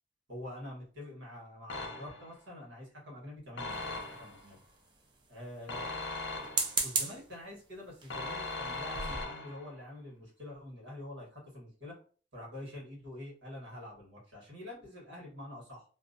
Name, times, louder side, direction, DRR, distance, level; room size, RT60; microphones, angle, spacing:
voice 1, 0.3-4.6 5.3-5.9 6.8-11.9 12.3-15.8, left 1 dB, 70° right, -3 dB, 1.2 m, -46 dB
sound 1, 1.7-2.4 3.6-4.5 5.7-6.9 8.1-9.8, left 2 dB, 70° left, 0.5 m, -39 dB
sound 2, 3.7-4.5 6.4-7.3 8.0-8.2 8.6-8.7 8.9-9.2, right 4 dB, 25° right, 0.4 m, -34 dB
2.5 x 2.0 x 2.5 m, 0.40 s
head